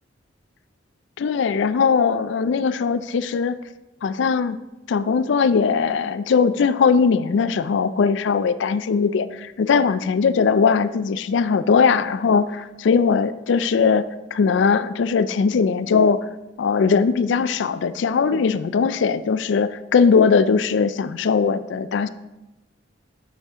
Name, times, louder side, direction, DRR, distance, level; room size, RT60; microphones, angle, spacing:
voice 1, 1.2-3.6 4.0-4.6 4.9-14.1 14.3-16.3 16.6-22.1, left 5 dB, 70° left, 14 dB, 0.3 m, -20 dB
7.9 x 6.5 x 3.6 m, 1.0 s
head